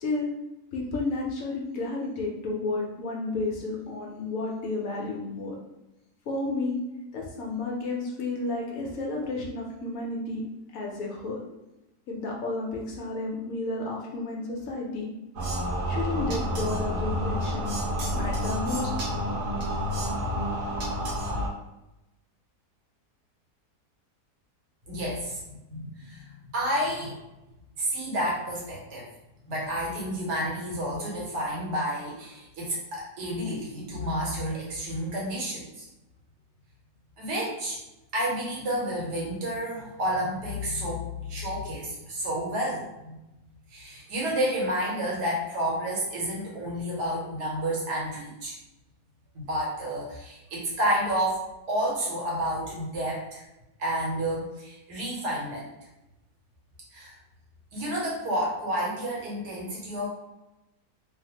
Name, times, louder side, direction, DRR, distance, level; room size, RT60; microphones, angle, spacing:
voice 1, 0.0-0.3 0.7-5.6 6.3-6.8 7.1-10.4 10.7-11.4 12.1-15.1 15.9-17.8 18.1-18.9, left 3 dB, 70° left, -1 dB, 0.9 m, -32 dB
sound 1, 15.4-21.5, equal, 65° right, 0.9 m, -29 dB
voice 2, 24.9-26.3 26.5-27.2 27.8-29.0 29.5-35.8 37.2-37.8 38.1-43.2 43.7-48.5 49.3-51.4 51.7-53.4 53.8-55.7 56.9-57.1 57.7-60.1, equal, 90° right, -4 dB, 1.5 m, -30 dB
3.2 x 2.0 x 2.8 m, 0.95 s
omnidirectional pair, 1.7 m